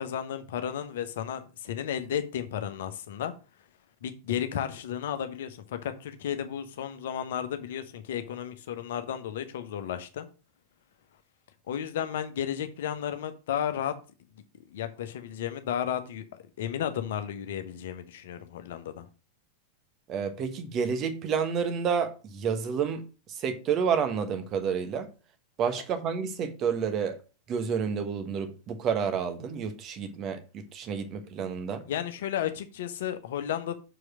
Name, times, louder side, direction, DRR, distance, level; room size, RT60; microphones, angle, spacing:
voice 1, 0.0-3.3 4.0-10.3 11.7-13.9 14.7-16.2 16.6-19.1 31.9-33.7, left 9 dB, 55° left, 1.1 m, -33 dB
voice 2, 20.1-23.0 23.3-25.1 25.6-27.2 27.5-31.9, right 6 dB, 35° right, 1.4 m, -29 dB
6.8 x 4.9 x 6.4 m
figure-of-eight pair, 90°, 0 cm